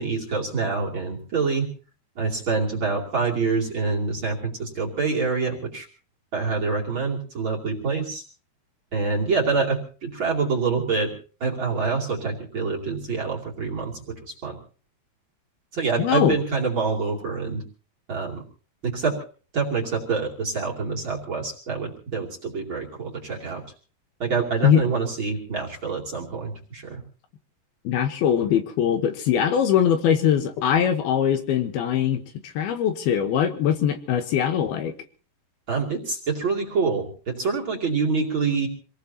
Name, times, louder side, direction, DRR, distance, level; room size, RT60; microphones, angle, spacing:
voice 1, 0.0-1.7 2.2-5.9 6.3-8.2 8.9-11.1 11.4-14.6 15.7-17.6 18.1-18.4 18.8-19.2 19.5-23.6 24.2-27.0 35.7-38.7, right 4 dB, 35° right, -2 dB, 2.9 m, -26 dB
voice 2, 16.0-16.4 24.6-24.8 27.8-32.2 32.6-34.9, left 9 dB, 75° left, 7 dB, 2.9 m, -21 dB
26.5 x 19.0 x 2.9 m, 0.39 s
omnidirectional pair, 4.8 m